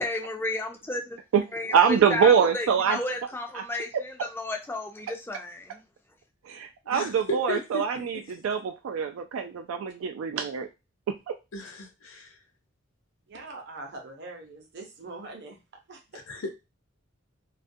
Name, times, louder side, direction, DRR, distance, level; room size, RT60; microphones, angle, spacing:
voice 1, 0.0-1.2 1.5-5.8, left 2 dB, 10° left, 0.4 m, -32 dB
voice 2, 1.7-3.0 3.5-3.6 6.4-10.7 11.3-11.4, right 7 dB, 75° right, 0.3 m, -24 dB
voice 3, 6.9-8.4 11.5-12.3 16.3-16.5, left 1 dB, 70° left, 0.6 m, -35 dB
voice 4, 13.3-15.6 15.9-16.2, right 2 dB, 55° right, 0.7 m, -42 dB
2.4 x 2.1 x 2.6 m
head